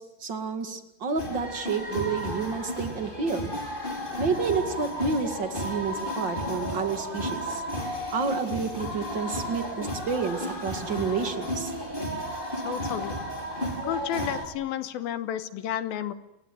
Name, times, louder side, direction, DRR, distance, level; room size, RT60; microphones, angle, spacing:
voice 1, 0.0-3.5 4.2-7.6 8.1-11.7, right 5 dB, 35° right, 7 dB, 2.2 m, -30 dB
sound 1, 1.2-14.5, equal, 15° left, 4.6 m, -33 dB
voice 2, 12.6-13.2 13.8-16.1, left 11 dB, 75° left, 11 dB, 3.0 m, -31 dB
29.0 x 20.5 x 9.3 m, 0.87 s
omnidirectional pair, 4.4 m